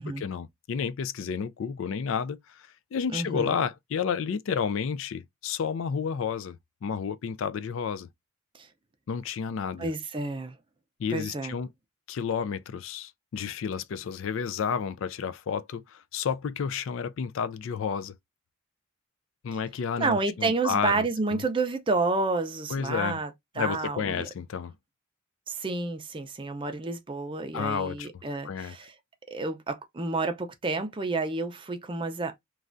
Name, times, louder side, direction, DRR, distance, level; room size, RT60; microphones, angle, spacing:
voice 1, 0.0-8.1 9.1-9.9 11.0-11.7 12.1-18.1 19.4-21.4 22.7-23.2 23.6-24.7 27.5-28.1 28.4-28.7, left 6 dB, 60° left, 0.3 m, -31 dB
voice 2, 3.1-3.6 8.6-8.7 9.8-10.6 11.1-11.6 20.0-24.3 25.5-28.9 29.3-32.4, right 3 dB, 25° right, 0.5 m, -30 dB
3.1 x 2.3 x 2.5 m
head